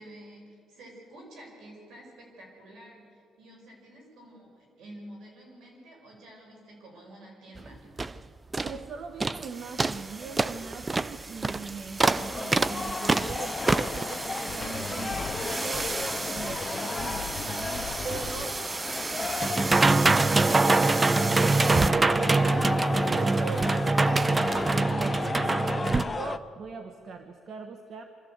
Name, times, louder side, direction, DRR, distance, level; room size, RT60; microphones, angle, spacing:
voice 1, 0.0-7.8, right 1 dB, 85° right, 0 dB, 6.2 m, -49 dB
sound 1, 7.6-7.7 8.0-8.2 8.5-8.8 9.2-9.5 9.8-26.1, right 3 dB, 25° right, 0.6 m, -26 dB
voice 2, 8.6-18.6 18.9-28.0, right 5 dB, 60° right, 6 dB, 1.2 m, -41 dB
sound 2, 12.1-26.4, left 4 dB, 25° left, 0.8 m, -34 dB
sound 3, 14.5-18.4, left 6 dB, 50° left, 1.4 m, -40 dB
24.5 x 13.5 x 8.2 m, 2.5 s
cardioid pair, 90°, 0 cm